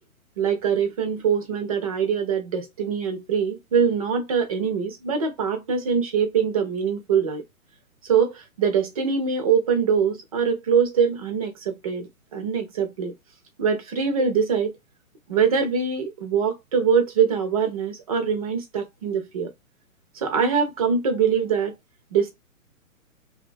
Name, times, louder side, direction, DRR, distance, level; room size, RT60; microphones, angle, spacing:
voice 1, 0.4-7.4 8.0-13.1 13.6-14.7 15.3-19.5 20.1-21.7 22.1-22.3, right 6 dB, 30° right, 0.4 m, -23 dB
2.4 x 2.3 x 2.3 m
figure-of-eight pair, 130°, 42 cm